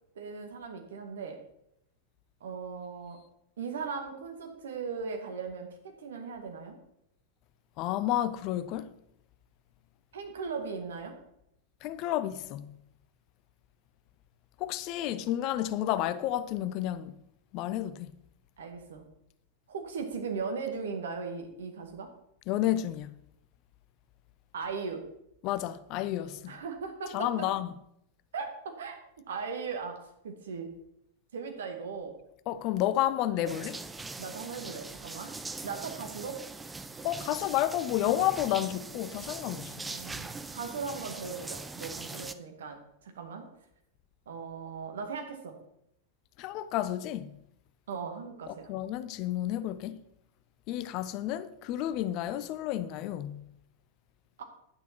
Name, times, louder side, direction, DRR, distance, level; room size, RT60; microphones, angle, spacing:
voice 1, 0.2-1.4 2.4-3.2 3.6-6.8 10.1-11.1 18.6-19.0 19.7-22.1 24.5-25.0 26.5-27.5 28.3-29.0 29.3-30.0 30.2-30.7 31.3-32.2 33.4-33.6 34.2-35.3 35.6-36.4 39.8-43.4 44.3-45.5 47.9-48.7 54.4-54.5, right 5 dB, 65° right, 2.0 m, -38 dB
voice 2, 7.8-8.9 11.8-12.7 14.6-17.1 17.5-18.1 22.5-23.1 25.4-26.5 27.1-27.7 32.5-33.8 37.0-39.9 46.4-47.3 48.5-50.0 50.7-53.4, left 13 dB, 40° left, 0.6 m, -31 dB
sound 1, 33.5-42.3, right 3 dB, 10° right, 0.6 m, -42 dB
10.5 x 9.3 x 4.5 m
figure-of-eight pair, 90°, 0 cm